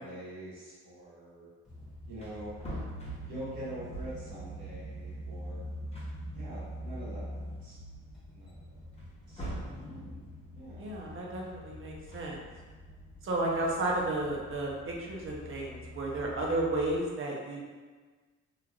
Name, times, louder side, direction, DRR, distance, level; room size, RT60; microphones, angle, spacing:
voice 1, 0.0-1.5 2.1-2.6 3.2-5.7 6.3-7.8 8.3-8.8 9.3-9.9 10.5-10.9, right 1 dB, 75° right, -9 dB, 1.4 m, -45 dB
sound 1, 1.6-17.0, equal, ahead, 1.3 m, -44 dB
Wood, 1.7-1.8 2.1-4.4 5.5-5.6 5.9-7.1 7.6-7.7 8.9-9.9 11.9-12.8, right 1 dB, 20° left, 0.7 m, -43 dB
voice 2, 10.7-12.4 13.2-17.6, right 2 dB, 45° right, -2 dB, 0.7 m, -32 dB
3.1 x 2.3 x 2.3 m, 1.4 s
cardioid pair, 90°, 30 cm